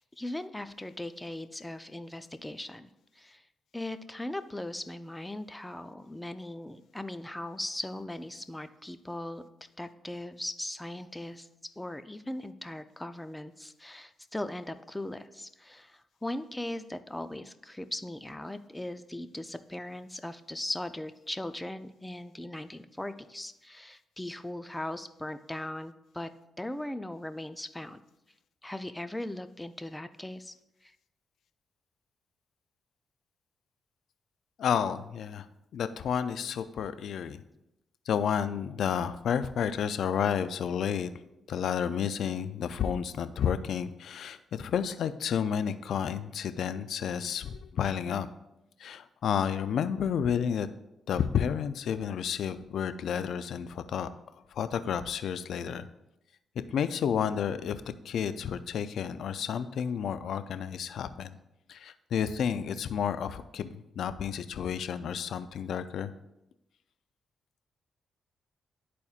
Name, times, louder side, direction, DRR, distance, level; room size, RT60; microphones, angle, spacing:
voice 1, 0.0-2.9 3.2-3.4 3.7-9.4 9.8-11.5 11.8-26.3 26.6-28.0 28.6-30.5 30.8-30.9, left 1 dB, 10° left, 10 dB, 0.5 m, -39 dB
voice 2, 34.6-35.5 35.7-37.4 38.1-41.1 41.5-48.3 48.8-50.7 51.1-54.1 54.5-55.9 56.5-61.4 61.7-66.1, left 8 dB, 75° left, 12 dB, 0.4 m, -31 dB
12.0 x 4.2 x 2.4 m, 0.88 s
supercardioid pair, 55°, 0 cm